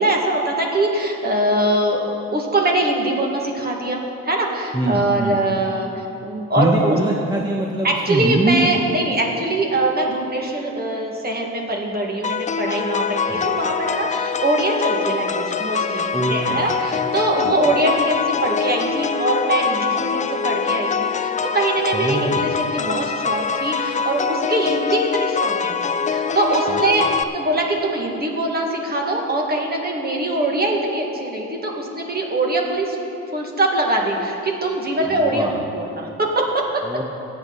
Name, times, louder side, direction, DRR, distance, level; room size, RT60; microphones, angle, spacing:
voice 1, 0.0-7.0 7.8-27.1 27.3-33.0 33.3-36.9, right 1 dB, 30° right, 0 dB, 2.0 m, -22 dB
voice 2, 4.7-5.4 6.6-8.7 13.3-13.5 16.1-16.7 17.4-17.5 21.9-22.6 26.7-26.8 35.1-35.6 36.8-37.0, right 1 dB, 15° right, -1 dB, 1.0 m, -23 dB
sound 1, 12.2-27.2, left 6 dB, 25° left, 0.4 m, -24 dB
16.5 x 8.9 x 4.1 m, 2.9 s
cardioid pair, 90°, 30 cm